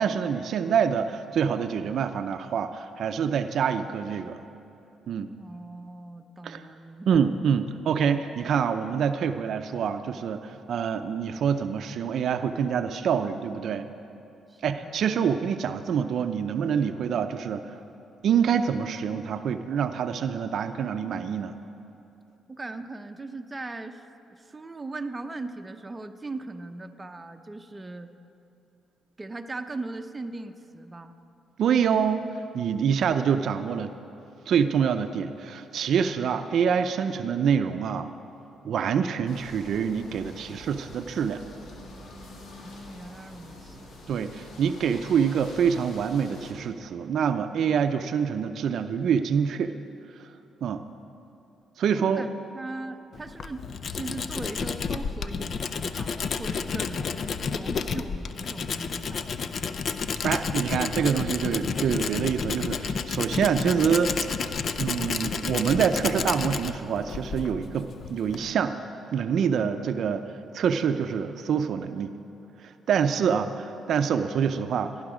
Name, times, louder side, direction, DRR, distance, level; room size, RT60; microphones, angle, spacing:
voice 1, 0.0-4.4 5.1-5.3 6.4-6.7 7.1-13.9 14.6-17.7 18.2-21.6 31.6-32.3 32.5-34.0 34.5-38.1 38.6-41.4 44.1-49.7 50.6-50.8 51.8-52.3 60.2-68.8 69.1-70.2 70.5-72.2 72.6-75.0, right 7 dB, 65° right, 8 dB, 0.5 m, -26 dB
voice 2, 5.4-7.3 14.5-15.1 22.5-24.0 24.3-28.1 29.2-31.2 42.6-43.8 51.9-59.9 73.2-73.7, right 2 dB, 20° right, 7 dB, 0.7 m, -39 dB
sound 1, 39.3-46.5, left 1 dB, 75° left, 2.6 m, -46 dB
Tools, 53.1-68.5, left 5 dB, 55° left, 0.5 m, -31 dB
15.5 x 11.0 x 5.0 m, 2.8 s
cardioid pair, 90°, 0 cm